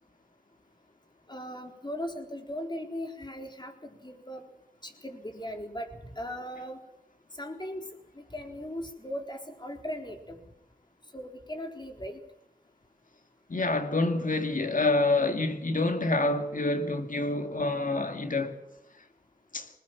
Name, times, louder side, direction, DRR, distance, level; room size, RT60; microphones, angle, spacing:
voice 1, 1.3-4.4 4.8-6.8 7.4-7.9 8.2-10.4 11.1-12.2, equal, 30° left, 4.1 m, -38 dB
voice 2, 13.5-18.6 19.5-19.7, left 2 dB, 60° left, 2.5 m, -27 dB
21.0 x 19.5 x 7.5 m
cardioid pair, 40°, 16 cm